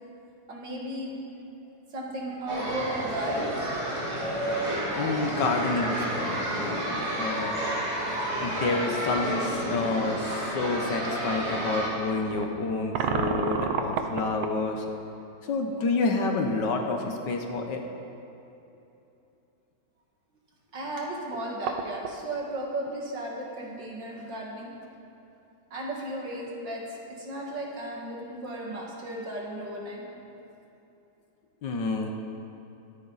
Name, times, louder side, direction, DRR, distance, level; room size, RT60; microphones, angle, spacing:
voice 1, 0.5-1.2 1.9-3.5 20.7-24.7 25.7-26.8 27.2-30.0, right 1 dB, 60° right, -2 dB, 2.6 m, -35 dB
sound 1, 2.5-11.9, right 1 dB, 30° right, 2.9 m, -30 dB
voice 2, 4.9-7.6 8.4-14.8 15.4-17.8 31.6-32.1, left 3 dB, 65° left, 3 dB, 1.6 m, -29 dB
sound 2, 9.1-9.3 10.1-10.2 12.3-14.6 17.1-17.2 17.5-17.6 21.0-21.1 21.3-22.2, right 5 dB, 85° right, 1.7 m, -30 dB
23.5 x 8.9 x 4.1 m, 2.9 s
omnidirectional pair, 2.2 m